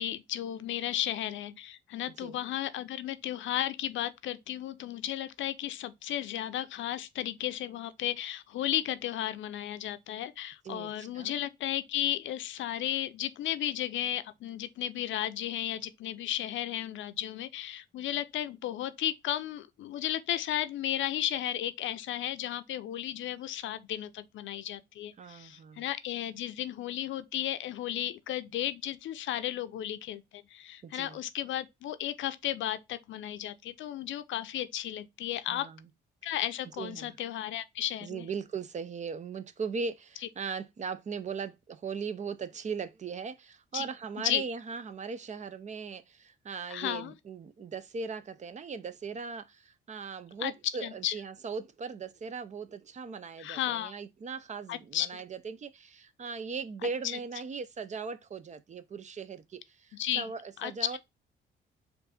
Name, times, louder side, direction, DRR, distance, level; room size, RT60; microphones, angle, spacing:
voice 1, 0.0-35.7 36.2-38.3 43.7-43.8 44.2-44.4 46.7-47.1 50.4-50.5 50.8-51.1 53.4-54.0 54.7-55.2 57.0-57.2 59.9-60.3 60.6-61.0, left 12 dB, 75° left, 0.6 m, -34 dB
voice 2, 10.6-11.4 25.2-25.8 30.8-31.2 35.5-35.9 36.8-37.2 38.0-61.0, right 5 dB, 35° right, 0.5 m, -39 dB
4.5 x 2.6 x 4.1 m
cardioid pair, 90°, 20 cm